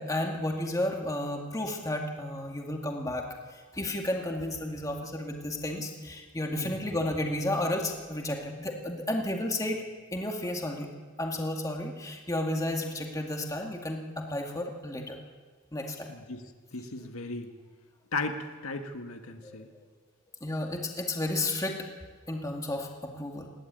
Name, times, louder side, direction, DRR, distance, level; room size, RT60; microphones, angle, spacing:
voice 1, 0.0-3.2 3.7-9.8 10.1-10.9 11.2-15.2 15.7-16.1 19.4-19.6 20.4-21.9 22.3-23.5, left 1 dB, 15° left, 1 dB, 2.1 m, -32 dB
voice 2, 6.6-6.9 16.1-16.4 16.7-17.5 18.1-19.7, left 3 dB, 90° left, 5 dB, 1.7 m, -36 dB
19.5 x 15.0 x 9.4 m, 1.5 s
head